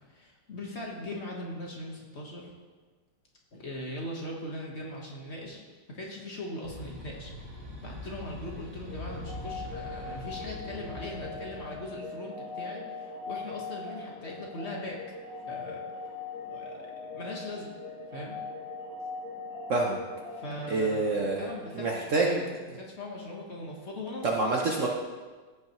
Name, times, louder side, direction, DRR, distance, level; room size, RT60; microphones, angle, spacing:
voice 1, 0.1-2.5 3.5-5.6 5.9-7.3 7.8-15.0 15.4-15.8 16.5-17.7 18.1-18.4 20.3-24.5, left 1 dB, 40° left, -2 dB, 1.4 m, -40 dB
sound 1, 6.6-11.8, left 1 dB, 30° right, 2.2 m, -43 dB
sound 2, 8.8-21.6, left 3 dB, 60° left, 2.3 m, -41 dB
voice 2, 20.7-21.5 21.8-22.4 24.2-24.9, right 3 dB, 55° right, 0 dB, 0.9 m, -27 dB
15.5 x 5.5 x 3.0 m, 1.4 s
omnidirectional pair, 1.9 m